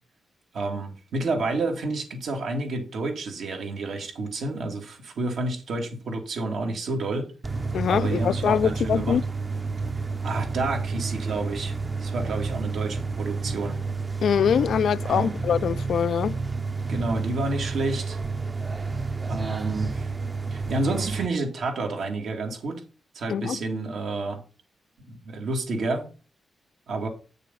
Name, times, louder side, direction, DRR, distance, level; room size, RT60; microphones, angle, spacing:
voice 1, 0.5-7.3 7.9-9.2 10.2-13.8 15.0-15.4 16.9-18.2 19.3-20.1 20.5-22.8 23.1-24.4 25.2-26.1 26.9-27.1, right 2 dB, 80° right, 2.6 m, -29 dB
sound 1, 7.4-21.3, right 4 dB, 25° right, 0.7 m, -30 dB
voice 2, 7.7-9.2 14.2-16.4 23.3-23.6, left 8 dB, 80° left, 0.4 m, -23 dB
8.8 x 6.7 x 5.7 m
cardioid pair, 95°, 0 cm